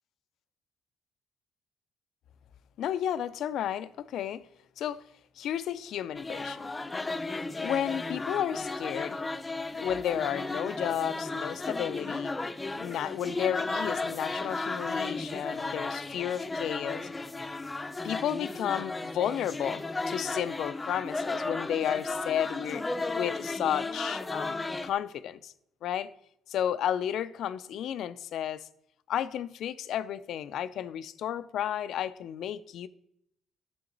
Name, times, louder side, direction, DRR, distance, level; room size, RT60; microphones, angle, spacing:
voice 1, 2.8-4.4 4.8-5.0 5.4-6.7 7.6-9.2 9.8-12.3 12.8-17.1 18.0-22.9 23.2-25.5 25.8-26.1 26.5-28.6 29.1-32.9, left 10 dB, 75° left, 0.4 m, -32 dB
sound 1, 6.2-24.9, left 3 dB, 20° left, 0.6 m, -34 dB
9.8 x 6.9 x 3.9 m
cardioid pair, 90°, 0 cm